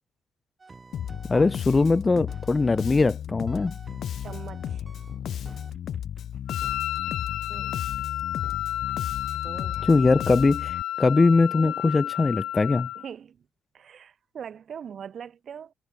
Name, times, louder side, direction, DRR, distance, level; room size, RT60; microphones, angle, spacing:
sound 1, 0.6-3.2 3.5-6.2 6.6-6.8 7.1-7.2 7.5-8.1 8.4-8.6 8.9-9.0 9.3-9.9 10.4-10.6 11.0-11.1 11.6-12.3, right 3 dB, 25° right, 3.4 m, -49 dB
Bass guitar, 0.9-10.8, left 10 dB, 65° left, 2.2 m, -34 dB
voice 1, 1.3-3.7 9.9-12.9, left 3 dB, 25° left, 1.1 m, -21 dB
voice 2, 4.2-4.8 7.5-7.8 9.4-10.0 11.5-12.0 12.9-13.5 13.7-15.7, right 8 dB, 55° right, 8.0 m, -42 dB
Wind instrument woodwind instrument, 6.5-13.1, left 14 dB, 85° left, 0.3 m, -32 dB
cardioid pair, 90°, 0 cm